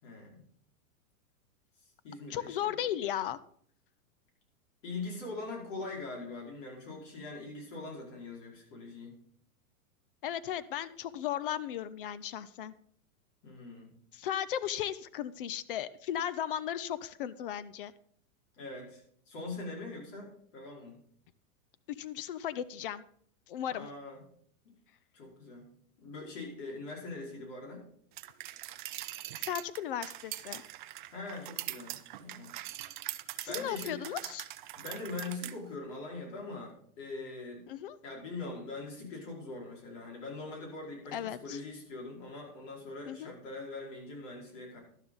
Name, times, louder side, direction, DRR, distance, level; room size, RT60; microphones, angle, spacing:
voice 1, 0.0-0.4 2.0-2.8 4.8-9.1 13.4-13.9 18.5-19.0 19.3-20.9 23.7-24.2 25.1-25.7 26.0-27.9 31.1-32.5 33.5-34.0 34.7-37.6 38.0-44.8, left 3 dB, 55° left, -1 dB, 4.9 m, -42 dB
voice 2, 2.3-3.4 10.2-12.7 14.1-17.9 21.9-23.0 23.5-23.9 29.4-30.6 33.4-34.5 37.7-38.0 41.1-41.6 43.1-43.3, left 10 dB, 40° left, 17 dB, 0.4 m, -36 dB
sound 1, 28.2-35.5, right 14 dB, 35° right, 0.4 m, -42 dB
12.0 x 10.5 x 3.9 m, 0.62 s
supercardioid pair, 155°, 44 cm